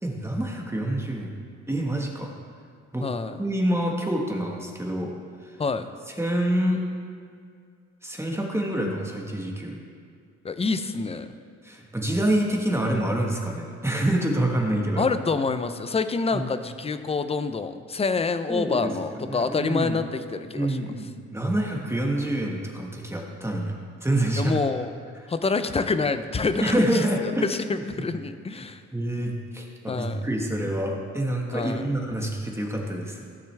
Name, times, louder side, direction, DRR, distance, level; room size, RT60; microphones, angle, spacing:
voice 1, 0.0-1.3 1.7-2.3 2.9-3.1 3.4-5.1 5.4-5.6 6.1-6.8 8.0-9.8 11.6-15.1 16.3-16.5 18.5-20.0 20.5-24.6 26.6-28.1 28.9-33.2, right 1 dB, 10° right, 0 dB, 1.4 m, -27 dB
voice 2, 3.0-3.3 5.6-5.9 10.4-11.3 15.0-20.8 24.4-24.9 25.3-28.8 29.9-30.2 31.5-31.8, left 4 dB, 20° left, 10 dB, 0.5 m, -27 dB
15.0 x 6.6 x 3.4 m, 2.2 s
cardioid pair, 90°, 30 cm